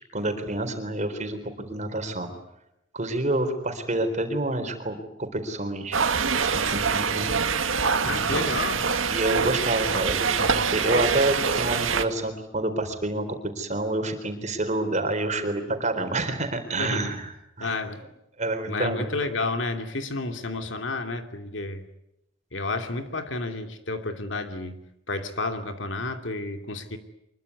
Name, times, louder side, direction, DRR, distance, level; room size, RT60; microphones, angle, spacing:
voice 1, 0.1-2.3 2.9-6.0 6.5-7.3 8.0-8.5 9.1-13.3 13.6-17.3 17.6-17.8 18.4-19.1, right 2 dB, 35° right, 7 dB, 4.0 m, -28 dB
sound 1, 5.9-12.0, right 5 dB, 85° right, 1.9 m, -25 dB
voice 2, 8.0-8.9 16.8-17.2 17.6-18.0 18.6-21.8 22.5-27.0, left 3 dB, 65° left, 7 dB, 2.7 m, -31 dB
24.5 x 22.5 x 9.7 m, 0.87 s
head